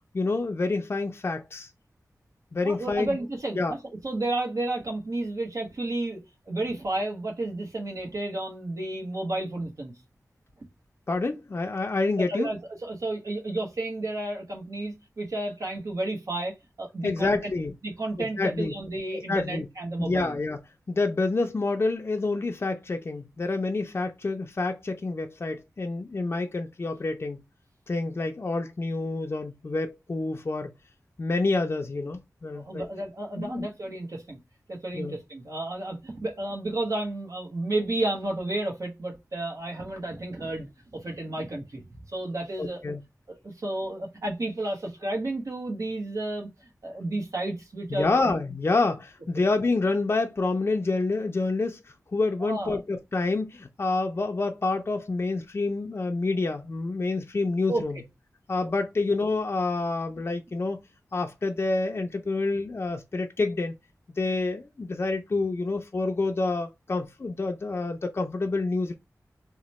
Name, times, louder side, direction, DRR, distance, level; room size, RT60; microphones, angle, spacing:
voice 1, 0.1-1.7 2.5-3.2 3.6-3.7 11.1-12.5 17.0-17.7 18.2-18.7 19.1-19.7 20.0-20.6 20.9-27.4 27.9-30.7 31.2-32.9 33.4-33.7 34.9-35.2 42.6-43.0 47.9-58.0 58.5-60.8 61.1-63.7 64.2-68.9, left 3 dB, 40° left, 0.4 m, -28 dB
voice 2, 2.6-3.8 4.0-9.9 12.2-17.3 17.8-20.4 32.5-34.4 34.7-42.8 43.3-46.5 46.8-48.3 52.4-52.8 57.7-57.9, right 2 dB, 65° right, 0.9 m, -32 dB
3.0 x 2.1 x 4.0 m
wide cardioid pair, 75°, 6 cm